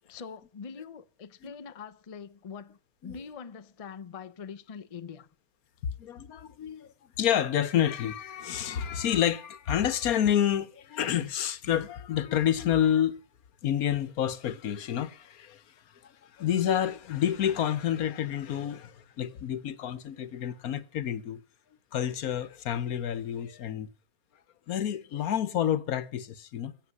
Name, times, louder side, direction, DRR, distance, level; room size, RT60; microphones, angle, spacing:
voice 1, 0.1-5.3, left 6 dB, 35° left, 0.6 m, -43 dB
voice 2, 6.0-13.2 13.6-21.4 21.9-23.9 24.7-26.7, left 10 dB, 85° left, 1.4 m, -29 dB
16.5 x 6.7 x 9.6 m
omnidirectional pair, 1.5 m